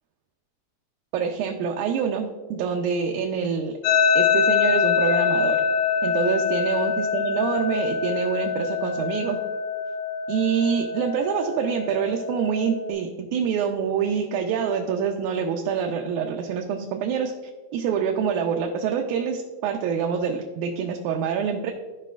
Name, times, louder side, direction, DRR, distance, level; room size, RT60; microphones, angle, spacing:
voice 1, 1.1-3.8 4.2-5.6 6.0-9.4 10.3-17.4 17.7-21.7, right 7 dB, 85° right, 2 dB, 2.0 m, -26 dB
sound 1, 3.8-12.9, left 6 dB, 90° left, 2.1 m, -24 dB
13.0 x 5.2 x 2.4 m, 1.3 s
omnidirectional pair, 3.4 m